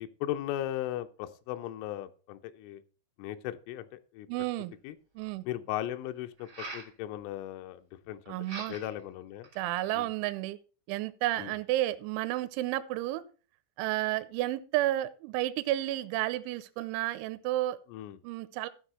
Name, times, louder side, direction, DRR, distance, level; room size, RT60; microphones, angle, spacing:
voice 1, 0.0-2.8 3.2-4.3 4.8-5.0 5.5-7.8 8.1-8.4 8.7-9.5 9.9-10.1 11.4-11.5 17.9-18.2, left 13 dB, 80° left, 8 dB, 3.2 m, -37 dB
voice 2, 4.3-4.7 5.2-5.4 8.3-8.8 9.6-10.6 10.9-13.2 13.8-17.8 18.2-18.7, right 15 dB, 85° right, 13 dB, 2.9 m, -31 dB
sound 1, 4.7-4.8 6.4-6.9 8.4-9.0 9.4-10.0, right 3 dB, 45° right, 1.0 m, -43 dB
13.0 x 6.2 x 4.3 m, 0.36 s
omnidirectional pair, 5.8 m